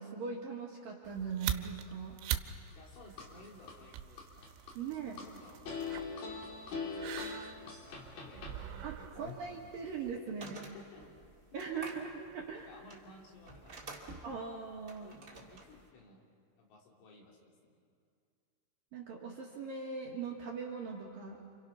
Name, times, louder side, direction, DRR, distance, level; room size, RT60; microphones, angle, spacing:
voice 1, 0.0-2.2 4.7-5.3 8.8-10.7 11.5-12.7 14.2-15.2 18.9-21.4, right 5 dB, 60° right, -1 dB, 2.7 m, -40 dB
sound 1, 1.0-10.2, right 11 dB, 80° right, 3.4 m, -43 dB
sound 2, 2.7-3.7 4.2-5.3 5.7-8.5, left 5 dB, 50° left, 4.2 m, -41 dB
voice 2, 2.8-4.5 4.8-6.0 6.7-8.9 10.3-11.1 11.5-11.6 12.5-14.2 15.0-16.2 16.6-17.8, left 2 dB, 70° left, -1 dB, 5.7 m, -58 dB
sound 3, 9.0-15.9, right 2 dB, 30° right, 1.6 m, -50 dB
29.5 x 28.0 x 5.8 m, 2.3 s
omnidirectional pair, 5.9 m